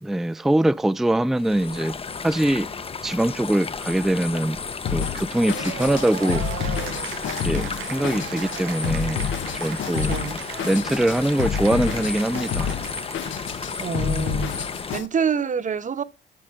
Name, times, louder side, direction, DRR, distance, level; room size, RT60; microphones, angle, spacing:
voice 1, 0.0-1.9 2.2-2.7 3.0-4.6 4.9-6.4 7.4-9.2 9.5-10.1 10.6-12.7, right 1 dB, ahead, 0.4 m, -23 dB
sound 1, 1.4-15.0, left 5 dB, 30° left, 0.8 m, -33 dB
Drum kit, 4.8-15.1, left 7 dB, 75° left, 1.0 m, -29 dB
Cheering / Applause, 5.3-14.8, right 13 dB, 85° right, 0.6 m, -38 dB
voice 2, 10.0-10.4 13.8-14.5 14.9-16.0, right 6 dB, 40° right, 1.0 m, -26 dB
8.8 x 5.3 x 6.2 m
cardioid pair, 90°, 20 cm